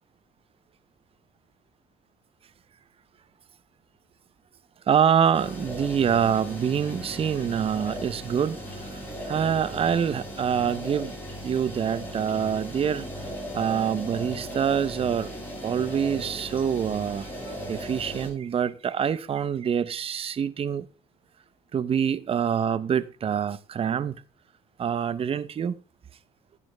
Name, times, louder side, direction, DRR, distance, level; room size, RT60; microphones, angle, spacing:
voice 1, 4.9-9.0 9.2-11.1 11.4-13.1 13.5-15.3 15.6-20.9 21.7-24.2 24.8-25.7, right 8 dB, 35° right, 0.6 m, -26 dB
sound 1, 5.3-18.3, equal, 10° left, 6.6 m, -37 dB
10.5 x 10.0 x 3.3 m
cardioid pair, 110°, 17 cm